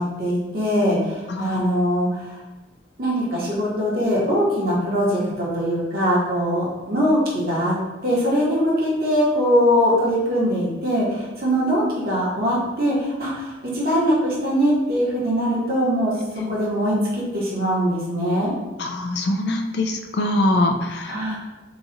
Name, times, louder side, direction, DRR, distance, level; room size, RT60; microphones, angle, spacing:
voice 1, 0.0-2.3 3.0-7.7 8.0-16.1 16.5-18.5 21.1-21.3, equal, 50° right, -6 dB, 1.1 m, -22 dB
voice 2, 1.3-1.6 16.4-16.5 18.8-21.3, left 1 dB, 60° left, 3 dB, 0.4 m, -23 dB
3.0 x 2.4 x 3.9 m, 1.2 s
head